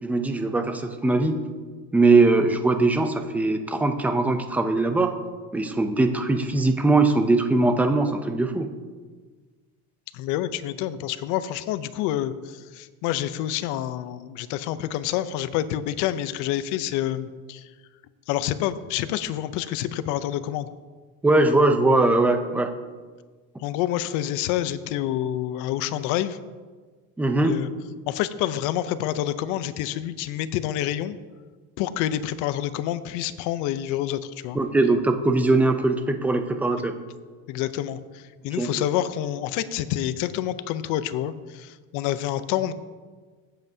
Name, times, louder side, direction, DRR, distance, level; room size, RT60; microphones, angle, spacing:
voice 1, 0.0-1.4 1.9-5.1 5.5-8.7 21.2-22.7 27.2-27.6 34.5-36.9 38.6-38.7, right 2 dB, 5° right, 7 dB, 0.4 m, -21 dB
voice 2, 10.1-17.7 18.3-20.7 23.6-26.4 27.4-27.7 28.1-31.2 31.8-34.6 37.5-42.7, left 12 dB, 60° left, 13 dB, 0.6 m, -28 dB
16.0 x 7.7 x 2.7 m, 1.4 s
cardioid pair, 155°, 34 cm